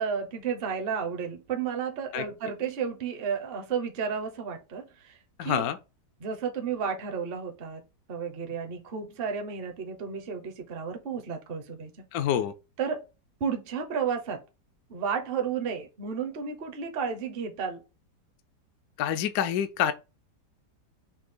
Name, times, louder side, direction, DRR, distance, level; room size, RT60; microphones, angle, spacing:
voice 1, 0.0-5.7 6.2-7.8 8.1-12.1 12.8-13.0 13.4-14.4 14.9-17.8, right 6 dB, 45° right, 0.9 m, -32 dB
voice 2, 5.4-5.8 12.1-12.5 19.0-19.9, left 10 dB, 70° left, 0.9 m, -27 dB
5.9 x 2.3 x 3.7 m
omnidirectional pair, 1.8 m